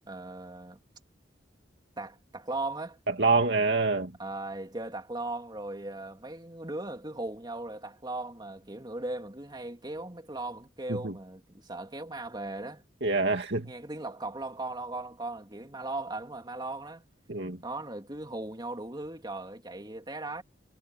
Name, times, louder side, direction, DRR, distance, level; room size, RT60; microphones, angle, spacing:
voice 1, 0.1-0.8 2.0-3.0 4.2-12.8 13.6-17.0 17.6-20.4, right 2 dB, 25° right, 3.3 m, -38 dB
voice 2, 3.1-4.1 10.9-11.1 13.0-13.7 17.3-17.6, right 3 dB, 65° right, 2.3 m, -26 dB
head